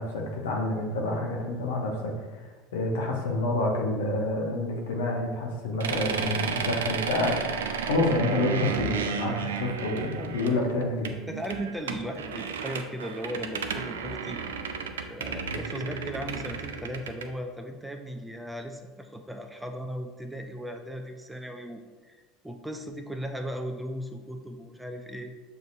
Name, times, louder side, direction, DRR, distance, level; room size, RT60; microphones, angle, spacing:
voice 1, 0.0-2.5 2.7-7.6 7.8-11.1 15.5-15.6, left 2 dB, 75° left, 1 dB, 0.8 m, -28 dB
sound 1, 5.8-17.3, right 6 dB, 80° right, 0.3 m, -33 dB
voice 2, 11.3-14.4 15.1-25.3, equal, 5° right, 5 dB, 0.4 m, -37 dB
6.4 x 2.7 x 2.4 m, 1.3 s
hypercardioid pair, 75°, 0 cm